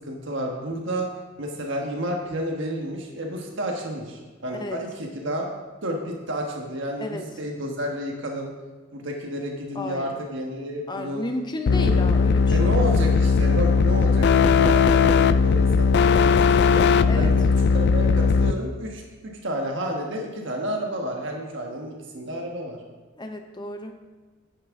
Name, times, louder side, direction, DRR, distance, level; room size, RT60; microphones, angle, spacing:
voice 1, 0.1-1.1 1.4-5.5 5.8-8.5 8.9-11.2 11.8-12.0 12.5-22.8, equal, 65° right, 1 dB, 1.3 m, -31 dB
voice 2, 9.7-10.1 10.9-13.0 17.1-17.4 23.1-24.0, left 1 dB, 20° left, 5 dB, 0.8 m, -33 dB
sound 1, 11.7-18.5, left 5 dB, 55° left, 0.4 m, -18 dB
10.0 x 9.3 x 3.6 m, 1.4 s
head